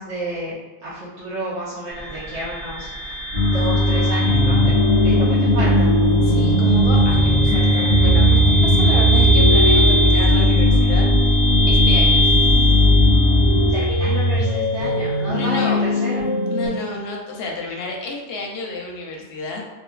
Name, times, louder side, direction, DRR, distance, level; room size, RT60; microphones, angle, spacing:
voice 1, 0.0-3.2 3.4-4.7 5.0-6.0 13.7-16.3, right 1 dB, 90° right, -9 dB, 1.0 m, -30 dB
sound 1, 1.9-14.9, equal, 5° right, 0.9 m, -25 dB
sound 2, 3.3-13.7, left 1 dB, 35° right, 0.9 m, -18 dB
sound 3, 4.3-16.7, equal, 60° right, 1.1 m, -19 dB
voice 2, 6.2-11.4 11.7-12.6 15.3-15.8 16.5-19.6, left 3 dB, 65° left, 0 dB, 0.7 m, -30 dB
2.7 x 2.3 x 2.3 m, 1.1 s
omnidirectional pair, 1.1 m